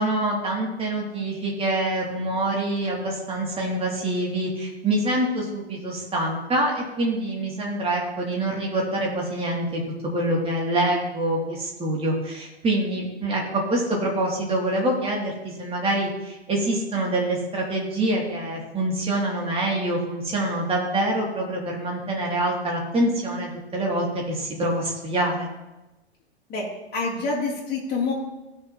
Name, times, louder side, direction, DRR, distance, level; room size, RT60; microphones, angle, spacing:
voice 1, 0.0-9.8 10.1-25.5, right 1 dB, 15° right, -2 dB, 2.7 m, -25 dB
voice 2, 26.5-28.1, left 3 dB, 30° left, -4 dB, 3.3 m, -27 dB
17.0 x 6.5 x 3.0 m, 1.0 s
hypercardioid pair, 115°, 33 cm